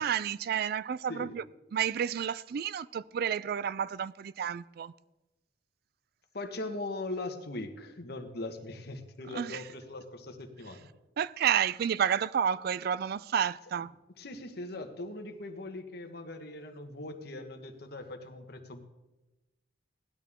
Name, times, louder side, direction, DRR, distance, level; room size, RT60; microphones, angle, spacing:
voice 1, 0.0-1.4 1.7-4.9 9.3-9.6 11.2-13.9, right 8 dB, 55° right, 0.3 m, -30 dB
voice 2, 6.3-10.9 14.2-18.8, left 2 dB, 60° left, 1.5 m, -40 dB
18.0 x 12.0 x 3.7 m
head